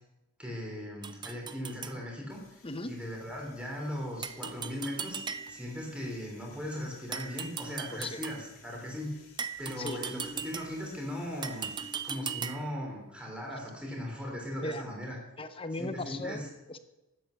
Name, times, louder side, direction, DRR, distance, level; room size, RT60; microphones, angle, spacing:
voice 1, 0.4-9.2 9.6-11.7 12.0-15.2 15.8-16.4, left 1 dB, 5° right, -1 dB, 3.7 m, -38 dB
sound 1, 1.0-2.0 4.2-5.8 7.1-8.5 9.4-10.9 11.4-12.8, right 6 dB, 20° right, 0.4 m, -39 dB
sound 2, 2.3-12.1, left 5 dB, 85° left, 2.8 m, -58 dB
voice 2, 15.4-16.8, left 2 dB, 25° left, 10 dB, 0.8 m, -37 dB
11.5 x 9.7 x 6.7 m, 1.0 s
head